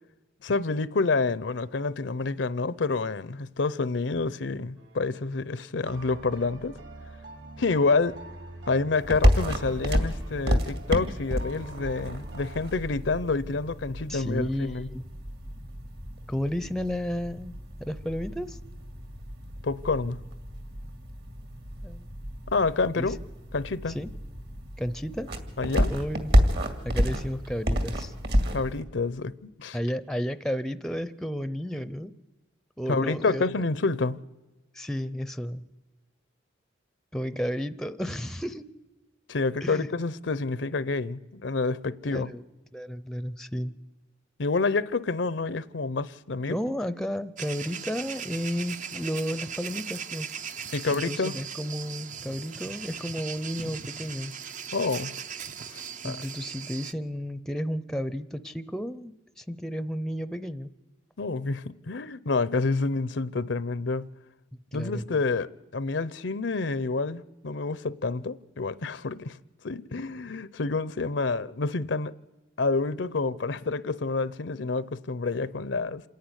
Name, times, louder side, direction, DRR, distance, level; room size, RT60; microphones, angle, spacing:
voice 1, 0.4-6.8 7.6-8.2 8.7-14.9 19.6-20.2 22.5-23.2 23.5-24.0 25.6-25.9 28.5-29.8 32.9-34.2 39.3-42.3 44.4-46.6 50.7-51.4 54.7-55.1 55.7-56.2 61.2-64.1 64.7-69.4 69.6-72.1 72.6-76.0, left 3 dB, 70° left, 0.7 m, -28 dB
sound 1, 4.8-5.3 5.8-12.6, right 1 dB, 75° right, 3.4 m, -44 dB
sound 2, 9.0-28.8, equal, 55° right, 2.4 m, -30 dB
voice 2, 14.1-15.0 16.3-18.6 21.8-22.1 22.9-23.1 23.9-24.1 24.8-25.3 25.9-26.3 26.8-28.1 29.7-32.1 32.8-33.4 34.7-35.6 37.1-38.7 39.6-39.9 42.1-42.4 42.7-43.7 46.5-50.3 50.9-54.3 56.0-60.7 64.7-65.1, equal, 5° left, 0.6 m, -32 dB
sound 3, 47.4-56.9, right 7 dB, 40° right, 0.7 m, -38 dB
27.5 x 10.5 x 9.8 m
head